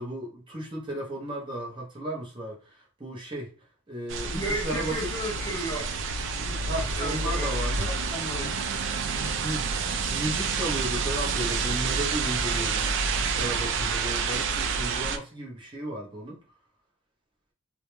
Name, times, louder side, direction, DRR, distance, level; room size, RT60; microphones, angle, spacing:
voice 1, 0.0-3.5 3.9-5.1 6.7-7.9 8.4-8.5 9.4-9.7 10.1-16.4, right 1 dB, 25° right, 0.7 m, -34 dB
sound 1, 4.1-15.2, right 5 dB, 60° right, 0.4 m, -28 dB
voice 2, 4.3-5.9 6.3-7.5 7.9-8.5, equal, 5° left, 0.9 m, -34 dB
2.3 x 2.1 x 3.0 m
head